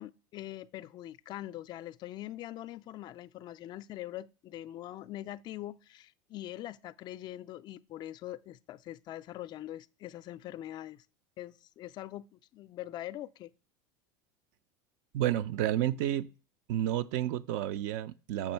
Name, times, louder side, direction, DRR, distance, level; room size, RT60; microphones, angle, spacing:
voice 1, 0.0-11.0 11.4-13.5, left 14 dB, 45° left, 0.4 m, -43 dB
voice 2, 15.1-16.3 16.7-18.5, right 12 dB, 65° right, 0.4 m, -30 dB
7.1 x 5.3 x 4.4 m
hypercardioid pair, 95°, 10 cm